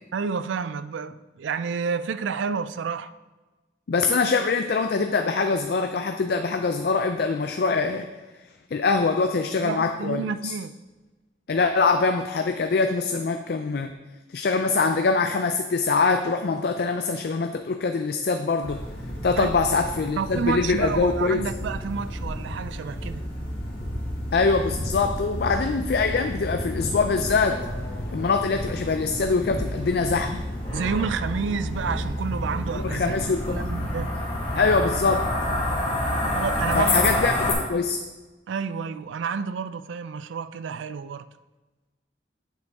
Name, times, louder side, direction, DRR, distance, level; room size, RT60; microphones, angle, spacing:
voice 1, 0.1-3.1 9.5-10.7 19.4-19.5 20.2-23.2 30.7-33.1 33.5-34.1 36.3-36.9 38.5-41.2, right 5 dB, 90° right, 0.4 m, -30 dB
voice 2, 3.9-8.1 8.7-10.5 11.5-13.9 14.3-18.8 19.2-21.4 24.3-27.7 28.1-30.4 32.8-33.6 34.6-35.3 36.7-38.0, left 4 dB, 55° left, 0.4 m, -23 dB
sound 1, 18.6-37.5, left 1 dB, 30° left, 1.7 m, -29 dB
8.1 x 6.4 x 3.5 m
head